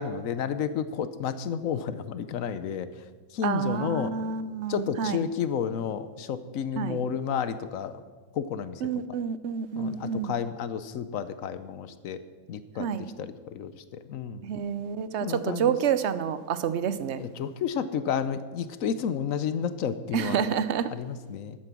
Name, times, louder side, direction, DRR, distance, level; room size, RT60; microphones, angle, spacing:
voice 1, 0.0-2.9 3.3-4.1 4.7-8.0 8.3-8.8 9.8-12.2 12.5-14.5 15.2-15.8 17.2-20.4 20.9-21.6, left 7 dB, 65° left, 13 dB, 1.0 m, -31 dB
voice 2, 3.4-5.2 6.8-7.0 8.8-10.3 12.8-13.1 14.4-17.2 20.1-20.9, right 7 dB, 60° right, 13 dB, 0.8 m, -28 dB
12.5 x 8.8 x 6.1 m, 1.4 s
omnidirectional pair, 1.6 m